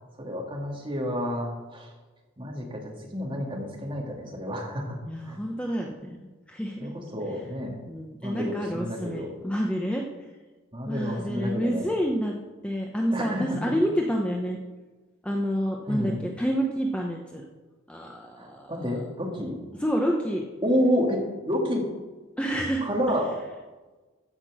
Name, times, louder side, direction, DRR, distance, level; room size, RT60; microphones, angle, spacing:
voice 1, 0.2-1.9 2.4-5.0 5.2-5.4 6.8-7.8 8.2-9.3 10.7-11.9 13.1-13.7 15.9-16.2 18.4-19.6 20.6-21.9 22.8-23.3, equal, 25° right, -1 dB, 2.1 m, -29 dB
voice 2, 5.1-6.2 6.5-6.9 7.9-10.0 10.9-12.4 12.6-14.6 15.2-17.4 17.9-18.7 19.8-20.4 22.4-22.8, equal, 5° left, 0 dB, 0.8 m, -28 dB
14.5 x 6.0 x 6.2 m, 1.3 s
head